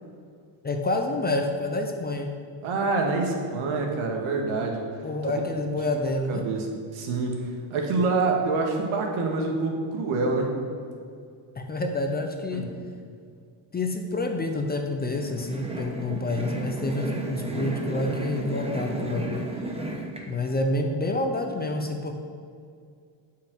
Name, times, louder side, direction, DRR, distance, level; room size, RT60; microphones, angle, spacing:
voice 1, 0.6-2.3 5.0-6.4 11.6-12.6 13.7-19.4 20.3-22.1, left 2 dB, 20° left, 4 dB, 0.6 m, -28 dB
voice 2, 2.6-4.9 5.9-6.0 6.3-6.7 6.9-10.5 12.5-12.7 17.5-17.7, right 3 dB, 75° right, 2 dB, 2.0 m, -26 dB
sound 1, 15.1-20.2, right 2 dB, 10° right, 1.2 m, -33 dB
8.7 x 5.8 x 7.8 m, 2.3 s
cardioid pair, 145°, 50 cm